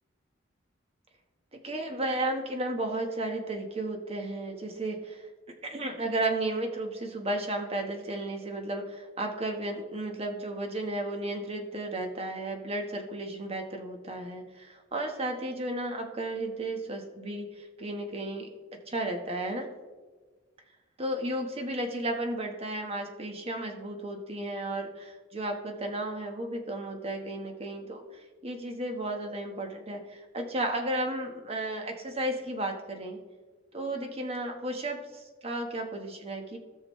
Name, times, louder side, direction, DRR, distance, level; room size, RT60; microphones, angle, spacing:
voice 1, 1.5-18.5 18.9-19.7 21.0-33.2 33.7-36.6, right 1 dB, 30° right, 3 dB, 1.2 m, -34 dB
17.0 x 6.3 x 3.1 m, 1.3 s
head